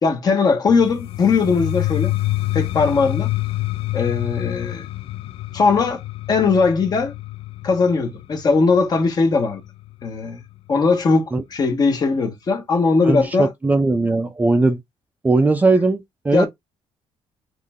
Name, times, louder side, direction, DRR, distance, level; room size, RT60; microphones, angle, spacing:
voice 1, 0.0-2.1 2.5-3.3 3.9-4.9 5.5-6.0 6.3-7.1 7.6-9.6 10.0-10.4 10.7-13.5 16.3-16.5, left 4 dB, 35° left, 1.3 m, -19 dB
sound 1, 0.7-10.5, left 17 dB, 60° left, 0.4 m, -27 dB
voice 2, 13.1-14.8 15.2-16.5, right 3 dB, 15° right, 0.5 m, -18 dB
3.8 x 3.2 x 3.6 m
cardioid pair, 140°, 11 cm